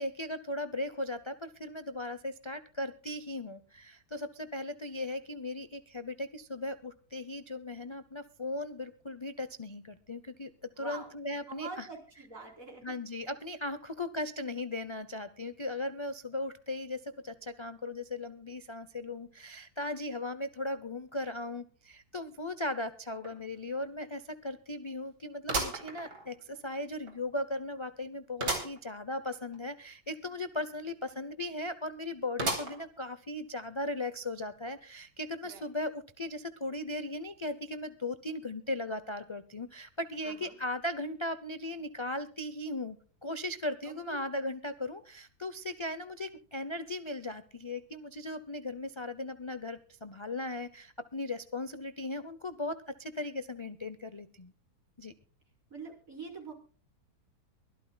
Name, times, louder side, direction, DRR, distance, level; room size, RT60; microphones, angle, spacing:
voice 1, 0.0-10.5 10.8-11.9 12.8-54.5 55.0-55.1, left 1 dB, 45° left, 11 dB, 0.3 m, -37 dB
voice 2, 10.8-11.1 11.5-12.9 31.1-31.2 35.4-35.6 40.2-40.5 43.9-44.2 55.7-56.5, right 4 dB, 50° right, 1 dB, 4.9 m, -45 dB
sound 1, 23.2-23.3 23.8-23.9 25.5-26.6 27.1-27.2 28.4-28.8 29.2-29.3 29.5-29.6 32.4-33.0 33.6-33.7 34.7-34.8, right 2 dB, 90° right, 4.0 m, -34 dB
23.5 x 13.0 x 2.3 m, 0.39 s
omnidirectional pair, 1.8 m